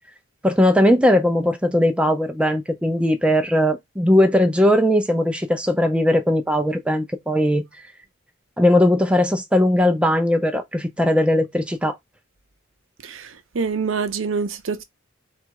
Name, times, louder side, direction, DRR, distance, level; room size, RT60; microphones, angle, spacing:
voice 1, 0.4-7.6 8.6-11.9, left 1 dB, 5° right, 0.5 m, -19 dB
voice 2, 13.0-14.8, right 5 dB, 65° right, 0.6 m, -26 dB
3.9 x 2.4 x 4.6 m
head